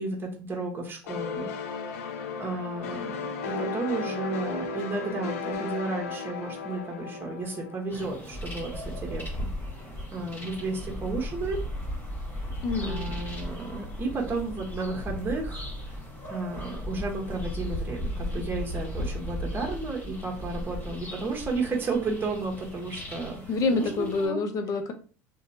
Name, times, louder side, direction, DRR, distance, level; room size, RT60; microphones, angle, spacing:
voice 1, 0.0-1.5 2.4-9.5 10.1-11.6 12.8-16.0 16.3-23.4 23.7-24.4, right 3 dB, 30° right, 0 dB, 1.0 m, -33 dB
sound 1, 1.1-8.5, left 4 dB, 90° left, 0.4 m, -35 dB
sound 2, 7.9-24.3, equal, 25° left, 1.5 m, -36 dB
voice 2, 12.6-13.1 23.5-24.9, left 3 dB, 50° left, 6 dB, 0.6 m, -27 dB
2.8 x 2.2 x 2.7 m, 0.37 s
supercardioid pair, 90°, 8 cm